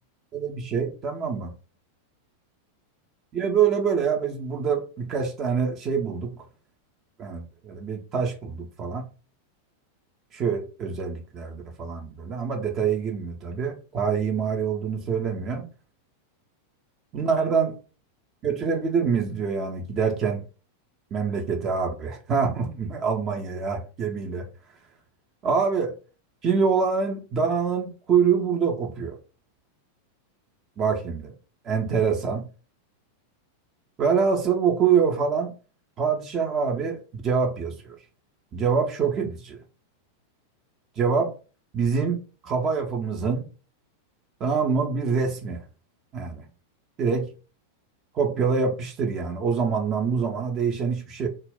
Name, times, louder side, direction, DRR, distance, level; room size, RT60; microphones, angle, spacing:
voice 1, 0.3-1.5 3.3-6.3 7.2-9.1 10.3-15.6 17.1-17.7 18.4-20.4 21.1-24.5 25.4-25.9 26.4-29.2 30.8-31.3 31.6-32.4 34.0-35.5 36.0-38.0 38.5-39.6 41.0-41.3 41.7-43.5 44.4-45.6 46.1-46.4 47.0-47.3 48.1-51.3, right 6 dB, 30° right, 0.4 m, -25 dB
2.1 x 2.0 x 3.6 m
figure-of-eight pair, 90°, 0 cm